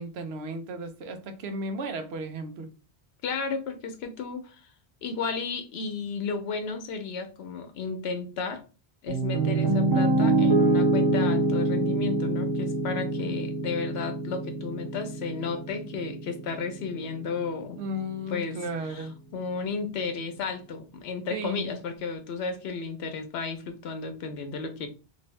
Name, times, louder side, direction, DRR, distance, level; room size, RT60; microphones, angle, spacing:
voice 1, 0.0-2.7 17.8-19.1 21.3-21.8, right 1 dB, 80° right, 0.9 m, -34 dB
voice 2, 3.2-4.6 5.0-8.6 9.0-17.8 18.3-18.6 18.9-19.1 19.3-24.9, left 5 dB, 80° left, 0.9 m, -33 dB
Piano, 9.1-17.2, right 2 dB, 25° right, 0.9 m, -26 dB
2.7 x 2.6 x 3.1 m
omnidirectional pair, 1.0 m